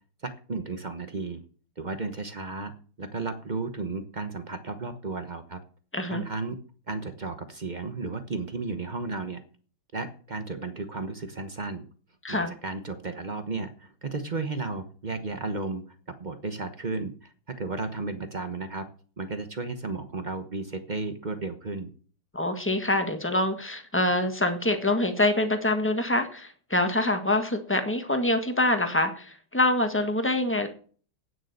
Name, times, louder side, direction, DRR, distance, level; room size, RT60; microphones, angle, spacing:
voice 1, 0.2-1.4 1.8-2.7 3.0-5.6 6.1-6.6 6.9-9.4 9.9-11.8 12.3-15.8 16.2-18.8 19.2-21.9, right 3 dB, 45° right, 9 dB, 0.6 m, -34 dB
voice 2, 5.9-6.2 12.2-12.5 22.3-30.7, left 1 dB, 5° left, 7 dB, 1.1 m, -25 dB
9.4 x 8.5 x 6.6 m, 0.42 s
omnidirectional pair, 2.4 m